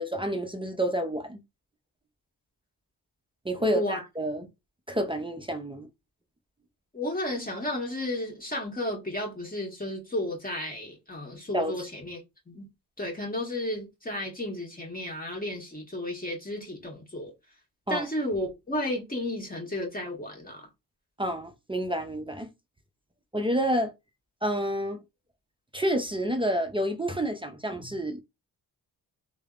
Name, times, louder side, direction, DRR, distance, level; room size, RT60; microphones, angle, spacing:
voice 1, 0.0-1.4 3.4-4.5 4.9-5.9 11.5-11.9 17.9-18.1 21.2-22.5 23.3-23.9 24.4-25.0 25.7-28.2, equal, 15° right, 0.5 m, -29 dB
voice 2, 3.6-4.0 6.9-12.2 12.5-12.7 13.0-17.3 17.9-20.7, left 1 dB, 20° left, 1.2 m, -33 dB
3.2 x 2.0 x 2.4 m
supercardioid pair, 55°, 42 cm